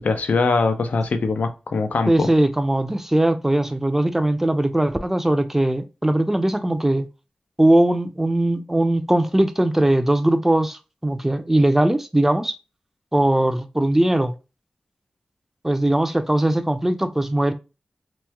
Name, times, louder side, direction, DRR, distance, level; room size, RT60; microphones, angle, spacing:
voice 1, 0.0-2.3, left 4 dB, 85° left, 0.5 m, -22 dB
voice 2, 2.1-7.1 7.6-12.6 13.1-14.4 15.6-17.5, right 1 dB, 10° right, 0.5 m, -20 dB
3.0 x 2.1 x 3.4 m
cardioid pair, 55°, 3 cm